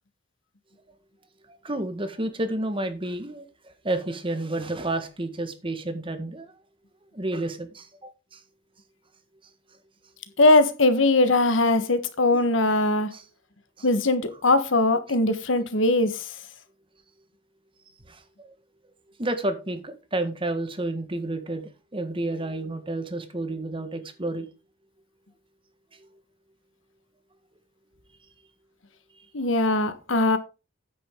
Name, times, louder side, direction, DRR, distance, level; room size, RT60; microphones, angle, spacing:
voice 1, 1.5-6.5 7.1-8.4 12.3-12.4 13.1-13.2 18.1-18.5 19.2-24.5 26.0-26.1, right 2 dB, 25° right, 1.6 m, -31 dB
voice 2, 10.4-13.1 13.8-16.3 29.3-30.4, left 2 dB, 85° left, 1.4 m, -21 dB
9.5 x 8.8 x 3.8 m
head